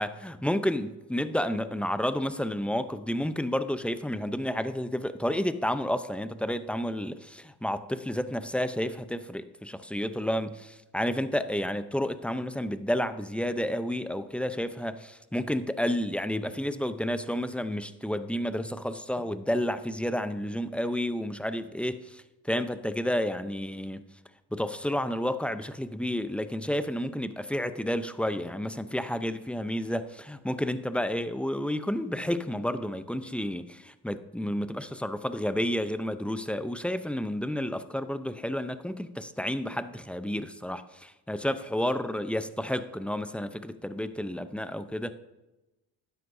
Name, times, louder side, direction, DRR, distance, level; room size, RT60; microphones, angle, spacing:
voice 1, 0.0-10.6 10.9-24.0 24.5-45.1, equal, 5° left, 11 dB, 0.7 m, -31 dB
12.0 x 9.3 x 2.7 m, 1.0 s
supercardioid pair, 50°, 46 cm